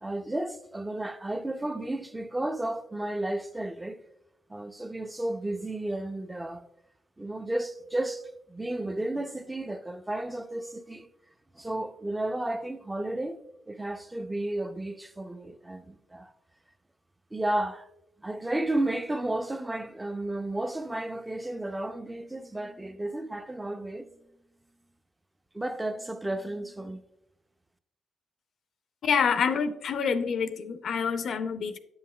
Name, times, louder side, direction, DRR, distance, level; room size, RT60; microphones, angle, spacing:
voice 1, 0.0-4.0 4.5-6.7 7.2-11.1 11.5-13.4 13.7-16.3 17.3-17.9 18.2-24.1 25.5-27.0, right 1 dB, 10° right, 0.5 m, -33 dB
voice 2, 29.0-31.8, left 6 dB, 60° left, 0.4 m, -27 dB
9.4 x 5.5 x 2.2 m
cardioid pair, 90°, 0 cm